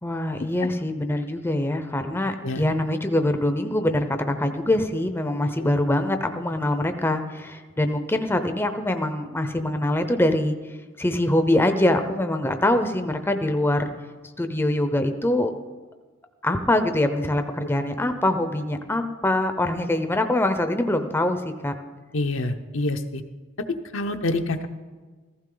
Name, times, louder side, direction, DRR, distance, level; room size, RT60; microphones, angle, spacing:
voice 1, 0.0-10.5 11.0-13.9 14.4-15.5 16.4-21.7, left 1 dB, 10° left, 7 dB, 0.6 m, -24 dB
voice 2, 22.1-23.2 23.9-24.7, left 2 dB, 70° left, 6 dB, 0.8 m, -26 dB
15.5 x 15.0 x 3.9 m, 1.4 s
head